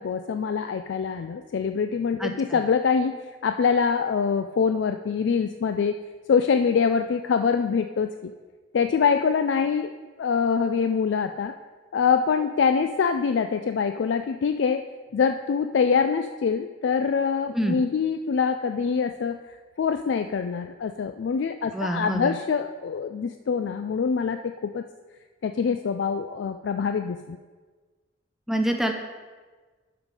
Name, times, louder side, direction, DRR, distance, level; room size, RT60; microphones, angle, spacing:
voice 1, 0.0-3.2 3.4-6.0 6.3-8.3 8.7-9.9 10.2-11.5 11.9-19.4 19.8-24.9 25.4-27.4, left 6 dB, 70° left, 8 dB, 0.4 m, -24 dB
voice 2, 2.2-2.6 17.5-17.8 21.7-22.4 28.5-28.9, right 1 dB, ahead, 4 dB, 0.5 m, -26 dB
12.0 x 5.2 x 4.8 m, 1.4 s
head